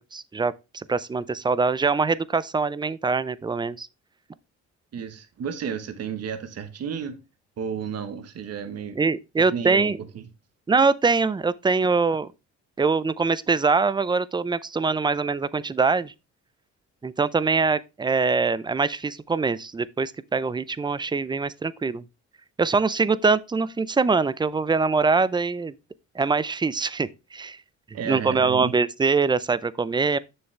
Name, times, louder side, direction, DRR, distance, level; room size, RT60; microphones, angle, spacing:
voice 1, 0.0-3.9 9.0-10.0 10.7-12.3 12.8-16.1 17.0-22.0 22.6-25.7 26.2-27.6 28.1-30.2, right 4 dB, 15° right, 0.4 m, -23 dB
voice 2, 4.9-7.2 7.6-9.0 9.4-10.3 27.9-28.7, right 7 dB, 55° right, 1.1 m, -32 dB
7.1 x 6.5 x 3.2 m
cardioid pair, 90°, 30 cm